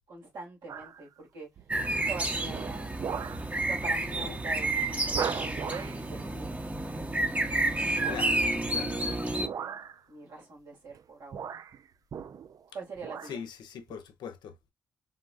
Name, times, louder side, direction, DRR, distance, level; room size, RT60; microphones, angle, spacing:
voice 1, 0.1-1.5 1.9-2.9 3.7-6.6 7.7-8.6 10.1-11.6 12.7-13.4, right 3 dB, 80° right, 2.0 m, -44 dB
sound 1, 0.7-1.0 1.6-1.9 2.4-3.5 3.9-4.1 4.4-4.5 5.1-6.0 7.9-8.4 9.3-10.0 10.9-11.0 11.3-12.7 13.0-13.4 13.9-14.0, right 7 dB, 55° right, 0.3 m, -38 dB
sound 2, 1.7-9.5, right 2 dB, 20° right, 0.8 m, -30 dB
voice 2, 8.1-9.1 13.3-14.5, left 8 dB, 75° left, 0.6 m, -41 dB
3.7 x 2.2 x 2.4 m
supercardioid pair, 45°, 7 cm